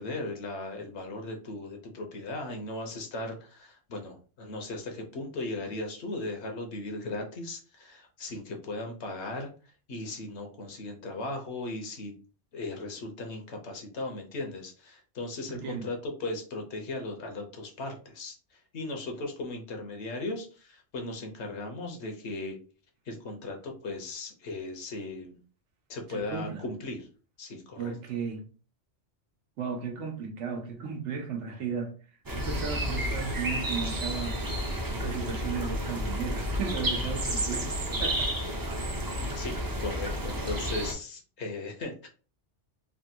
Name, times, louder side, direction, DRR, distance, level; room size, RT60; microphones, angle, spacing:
voice 1, 0.0-9.5 9.9-12.1 12.5-18.4 18.7-22.6 23.1-25.4 25.9-27.1 27.4-27.9 39.3-42.1, left 2 dB, 70° left, 1.1 m, -37 dB
voice 2, 15.5-15.8 26.1-26.6 27.8-28.4 29.6-32.0 32.3-34.4 34.9-38.3, right 6 dB, 85° right, 1.1 m, -35 dB
sound 1, 32.3-40.9, equal, 30° right, 0.4 m, -31 dB
3.3 x 2.2 x 2.7 m
omnidirectional pair, 1.2 m